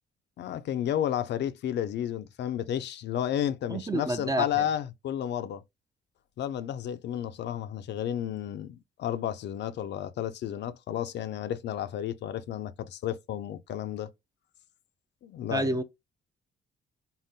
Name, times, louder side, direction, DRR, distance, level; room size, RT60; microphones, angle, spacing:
voice 1, 0.4-5.6 6.4-14.1 15.2-15.7, left 10 dB, 65° left, 0.4 m, -32 dB
voice 2, 3.7-4.7 15.5-15.8, right 1 dB, 20° right, 0.4 m, -29 dB
3.6 x 2.0 x 2.6 m
cardioid pair, 90°, 20 cm